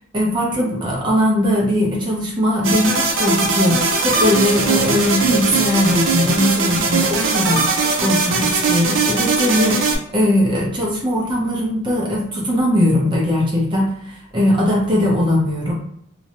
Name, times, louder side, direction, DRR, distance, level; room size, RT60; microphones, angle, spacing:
voice 1, 0.1-7.6 8.0-9.8 10.1-15.7, left 1 dB, 25° right, -4 dB, 0.8 m, -19 dB
sound 1, 2.6-10.0, right 4 dB, 75° right, 0.5 m, -19 dB
2.5 x 2.1 x 2.9 m, 0.70 s
head